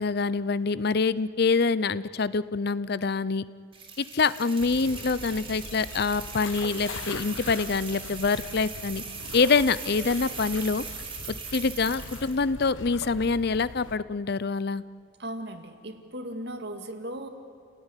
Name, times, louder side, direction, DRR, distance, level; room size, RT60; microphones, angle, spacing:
voice 1, 0.0-3.4 4.0-9.0 9.3-10.8 11.5-14.8, left 4 dB, 55° left, 17 dB, 0.6 m, -25 dB
sound 1, 3.7-12.4, right 5 dB, 30° right, 3.3 m, -40 dB
Puerto de Baiona, 4.6-14.0, left 3 dB, 75° left, 1.1 m, -42 dB
voice 2, 15.2-17.3, right 1 dB, 55° right, 6 dB, 2.2 m, -37 dB
30.0 x 18.0 x 9.9 m, 2.5 s
head